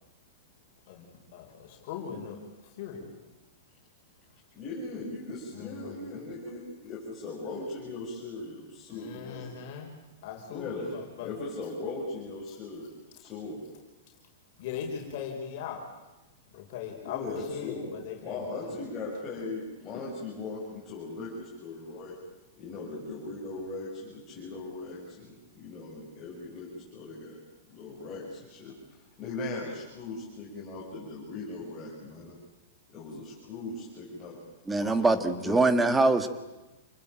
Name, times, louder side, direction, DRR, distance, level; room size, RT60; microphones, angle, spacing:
voice 1, 0.9-2.4 2.8-3.1 5.5-6.1 8.9-10.0 10.2-11.3 14.6-15.8 16.5-18.8, left 7 dB, 45° left, 1 dB, 5.4 m, -39 dB
voice 2, 4.5-9.7 10.5-10.9 11.2-12.9 13.2-13.6 17.0-17.9 18.2-22.2 22.6-27.4 27.7-28.7 29.2-32.4 32.9-34.4 34.8-35.6, left 3 dB, 20° left, -6 dB, 6.9 m, -39 dB
voice 3, 34.7-36.3, right 3 dB, 10° right, 10 dB, 1.8 m, -23 dB
28.5 x 20.5 x 9.0 m, 1.0 s
supercardioid pair, 160°, 0 cm